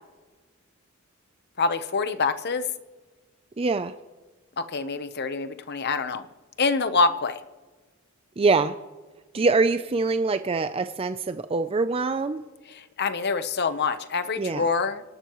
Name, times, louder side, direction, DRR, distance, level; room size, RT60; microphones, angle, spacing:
voice 1, 1.6-2.7 4.6-6.3 6.6-7.4 12.7-15.0, left 4 dB, 50° left, 11 dB, 0.9 m, -26 dB
voice 2, 3.6-3.9 8.4-8.8 9.3-12.4 14.4-14.7, right 3 dB, 30° right, 10 dB, 0.4 m, -24 dB
25.5 x 11.5 x 3.1 m, 1.3 s
head